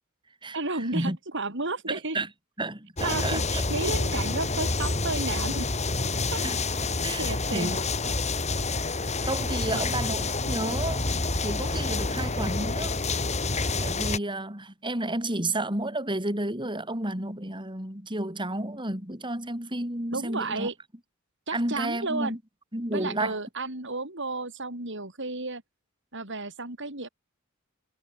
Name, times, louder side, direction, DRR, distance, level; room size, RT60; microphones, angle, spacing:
voice 1, 0.5-2.2 3.0-5.7 6.3-6.4 7.2-7.8 9.7-9.8 20.1-20.7 21.5-22.4 22.9-25.6 26.1-27.1, right 3 dB, 60° right, 6.0 m, -32 dB
voice 2, 1.9-2.3 2.6-3.4 6.4-6.6 7.0-7.8 8.7-13.0 13.8-20.7 21.5-22.4 22.7-23.4, right 1 dB, 20° right, 7.5 m, -31 dB
sound 1, 3.0-14.2, left 3 dB, 30° left, 3.5 m, -28 dB
head